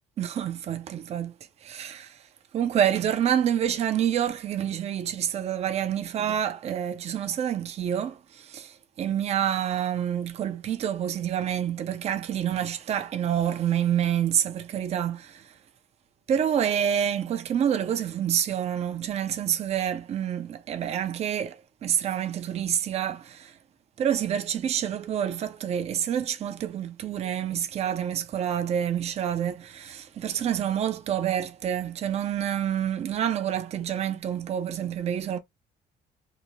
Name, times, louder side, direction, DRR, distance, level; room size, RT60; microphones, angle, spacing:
voice 1, 0.2-1.3 1.6-2.2 2.5-15.5 16.3-23.6 24.0-35.4, right 9 dB, 40° right, 0.4 m, -28 dB
2.8 x 2.0 x 2.6 m
cardioid pair, 110°, 17 cm